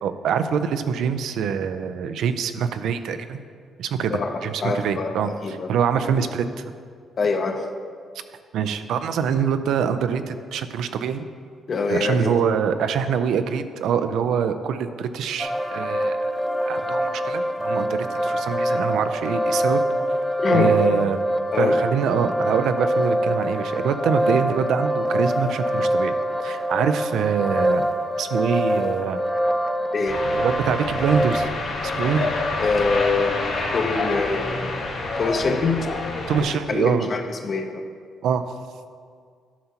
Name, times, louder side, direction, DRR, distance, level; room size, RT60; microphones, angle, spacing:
voice 1, 0.0-3.4 3.8-6.5 8.5-11.3 11.9-16.2 16.7-19.8 20.5-21.2 21.6-26.1 26.4-27.9 28.2-29.2 30.3-31.5 31.8-32.3 36.3-37.1 38.2-38.6, right 7 dB, 80° right, 10 dB, 0.4 m, -24 dB
voice 2, 4.1-5.7 7.2-7.6 11.7-12.3 20.4-20.8 21.5-21.8 29.9-30.2 32.6-34.8 35.2-35.9 36.4-37.8, left 4 dB, 45° left, 5 dB, 0.7 m, -24 dB
sound 1, 15.4-31.5, equal, ahead, 0.6 m, -24 dB
sound 2, 30.1-36.4, left 3 dB, 80° left, 1.6 m, -28 dB
11.5 x 5.6 x 2.9 m, 2.1 s
cardioid pair, 90°, 0 cm